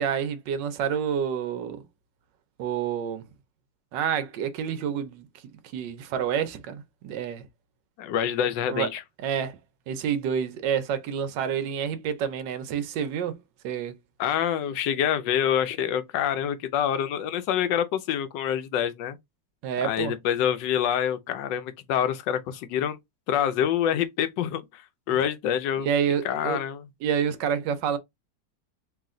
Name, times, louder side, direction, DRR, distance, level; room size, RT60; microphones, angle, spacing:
voice 1, 0.0-1.8 2.6-3.2 3.9-5.3 5.7-7.4 8.7-8.9 9.2-9.6 9.9-13.4 13.6-13.9 19.6-20.1 25.1-25.2 25.8-26.6 27.0-28.0, right 8 dB, 75° right, 1.3 m, -28 dB
voice 2, 8.0-9.0 14.2-19.2 19.8-23.0 23.3-24.8 25.1-25.9 26.2-26.8, left 9 dB, 80° left, 1.3 m, -26 dB
3.2 x 3.0 x 3.6 m
omnidirectional pair, 2.0 m